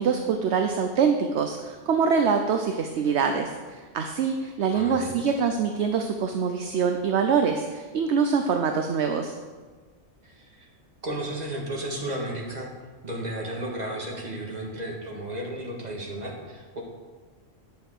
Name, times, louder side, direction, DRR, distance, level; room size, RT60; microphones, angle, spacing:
voice 1, 0.0-9.3, right 6 dB, 65° right, 5 dB, 1.0 m, -24 dB
voice 2, 4.7-5.1 10.2-10.7 11.0-12.7 13.0-16.8, right 1 dB, 35° right, -1 dB, 2.0 m, -33 dB
10.0 x 6.9 x 6.7 m, 1.4 s
omnidirectional pair, 1.3 m